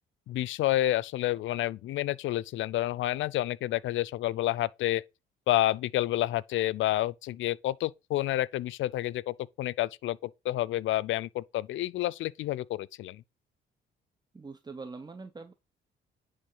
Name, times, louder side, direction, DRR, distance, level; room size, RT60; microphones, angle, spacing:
voice 1, 0.3-5.0 5.5-13.2, left 15 dB, 75° left, 0.5 m, -29 dB
voice 2, 14.3-15.5, right 4 dB, 20° right, 0.9 m, -43 dB
10.0 x 3.6 x 5.5 m
cardioid pair, 90°, 20 cm